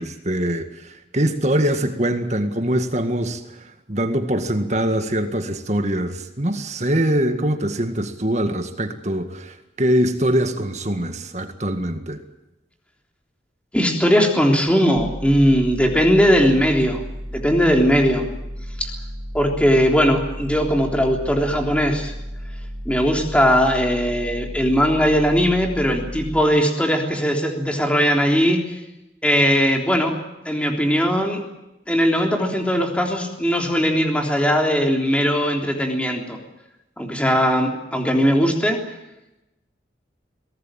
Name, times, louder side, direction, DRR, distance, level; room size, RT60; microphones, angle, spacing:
voice 1, 0.0-12.2, right 1 dB, 40° right, 7 dB, 1.9 m, -23 dB
voice 2, 13.7-17.0 17.3-18.3 18.8-18.9 19.3-22.1 22.9-28.6 29.2-30.1 30.5-31.4 31.9-36.4 37.0-38.8, equal, 5° left, 2 dB, 3.5 m, -19 dB
sound 1, 15.0-26.4, equal, 20° right, 2.1 m, -33 dB
23.0 x 18.0 x 8.9 m, 0.93 s
head